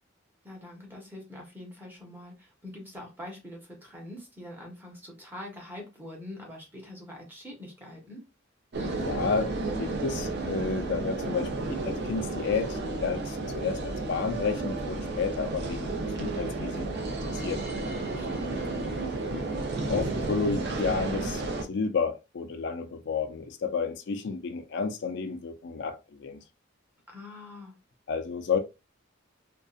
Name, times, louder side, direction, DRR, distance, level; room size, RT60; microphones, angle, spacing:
voice 1, 0.4-8.2 18.0-18.7 27.1-27.7, left 1 dB, 10° right, 0.9 m, -44 dB
sound 1, 8.7-21.6, right 2 dB, 55° right, 0.6 m, -32 dB
voice 2, 9.0-9.5 9.8-17.0 17.3-17.6 19.9-21.4 21.7-26.4 28.1-28.6, left 5 dB, 60° left, 0.4 m, -31 dB
2.6 x 2.2 x 2.4 m
head